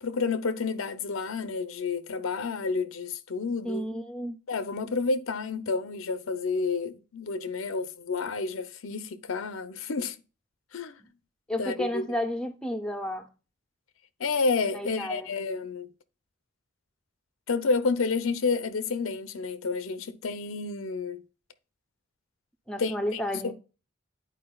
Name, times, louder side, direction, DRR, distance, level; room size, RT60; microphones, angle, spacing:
voice 1, 0.0-3.9 4.5-10.2 10.7-11.0 11.6-12.1 14.2-15.9 17.5-21.2 22.8-23.5, left 4 dB, 85° left, 0.6 m, -30 dB
voice 2, 3.6-4.4 11.5-13.3 14.7-15.3 22.7-23.5, left 1 dB, 5° left, 0.5 m, -32 dB
10.5 x 4.6 x 2.3 m
head